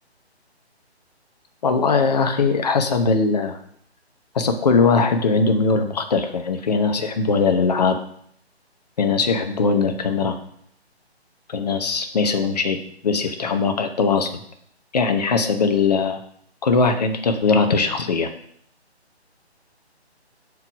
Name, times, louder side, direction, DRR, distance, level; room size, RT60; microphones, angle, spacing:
voice 1, 1.6-3.6 4.3-8.0 9.0-10.4 11.5-12.8 13.0-14.3 14.9-16.2 16.6-18.3, left 4 dB, 40° left, 6 dB, 0.8 m, -20 dB
5.8 x 4.7 x 5.8 m, 0.66 s
figure-of-eight pair, 145°, 33 cm